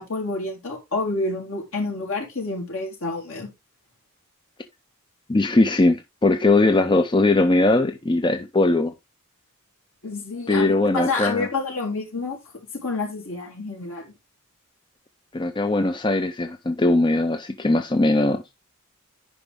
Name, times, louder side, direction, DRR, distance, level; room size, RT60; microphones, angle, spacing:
voice 1, 0.0-3.5 10.0-12.4 12.8-14.1, left 3 dB, 65° left, 3.5 m, -28 dB
voice 2, 5.3-8.9 10.5-11.5 15.3-18.4, left 2 dB, 20° left, 0.5 m, -20 dB
10.5 x 5.1 x 3.4 m
head